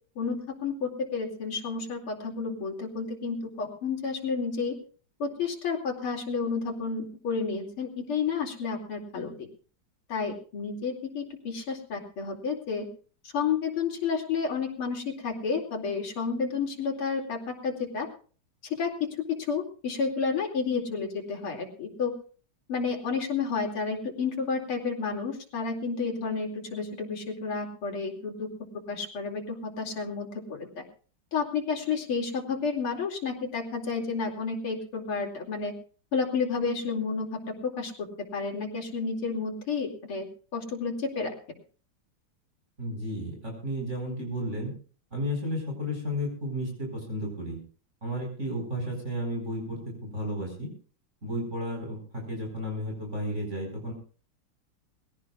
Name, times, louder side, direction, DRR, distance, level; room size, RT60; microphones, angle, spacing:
voice 1, 0.2-4.8 5.2-9.5 10.1-12.9 13.2-18.1 18.6-18.9 19.5-22.1 22.7-28.5 28.9-30.8 31.3-35.7 36.1-38.1 38.3-40.3 40.5-41.3, left 5 dB, 80° left, 0 dB, 3.6 m, -31 dB
voice 2, 42.8-44.7 45.1-47.6 48.0-50.7 51.2-53.9, equal, 30° right, 0 dB, 5.2 m, -33 dB
21.5 x 17.0 x 2.4 m, 0.40 s
omnidirectional pair, 2.4 m